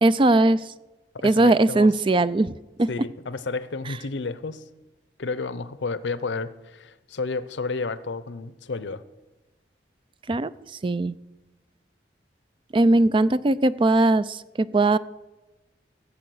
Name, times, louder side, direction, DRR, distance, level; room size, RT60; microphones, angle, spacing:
voice 1, 0.0-0.6 1.2-2.5 2.8-2.9 10.3-10.5 10.8-11.1 12.7-15.0, right 2 dB, 30° right, 16 dB, 0.4 m, -19 dB
voice 2, 1.1-1.9 2.9-4.6 5.2-9.0, left 4 dB, 85° left, 15 dB, 0.7 m, -31 dB
17.0 x 7.4 x 7.8 m, 1.1 s
head